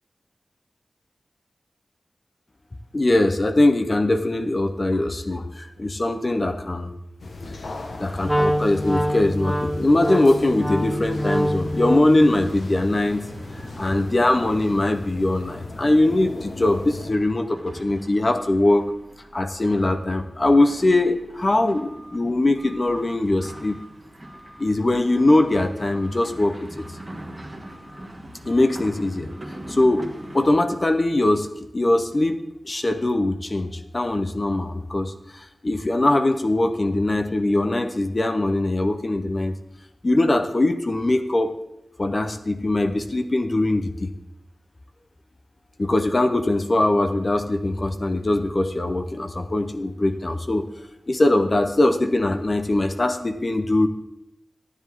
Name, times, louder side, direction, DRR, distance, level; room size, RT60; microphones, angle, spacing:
voice 1, 2.9-6.9 8.0-13.3 13.8-18.8 19.3-23.8 24.6-26.8 28.5-29.3 29.7-30.1 30.3-31.5 31.7-39.6 40.0-41.6 42.0-44.1 45.8-50.7 51.1-53.9, left 2 dB, 40° left, 6 dB, 0.7 m, -21 dB
sound 1, 7.2-17.1, left 2 dB, 85° left, 1.1 m, -38 dB
Wind instrument woodwind instrument, 8.2-12.3, equal, ahead, 1.0 m, -25 dB
sound 2, 10.6-30.5, right 1 dB, 25° right, 1.6 m, -42 dB
12.5 x 10.0 x 3.6 m, 0.85 s
wide cardioid pair, 95°, 0 cm